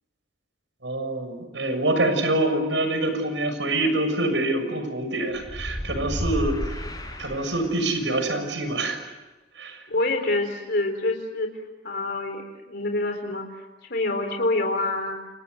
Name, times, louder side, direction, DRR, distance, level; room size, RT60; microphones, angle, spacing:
voice 1, 0.8-6.9 7.2-9.0 9.5-9.8, right 1 dB, 85° right, 8 dB, 6.7 m, -25 dB
sound 1, 5.3-8.0, equal, 20° left, 6.4 m, -32 dB
voice 2, 9.9-11.5 11.8-13.6 13.9-15.2, left 2 dB, 65° left, 4 dB, 3.9 m, -26 dB
30.0 x 29.5 x 6.7 m, 1.1 s
head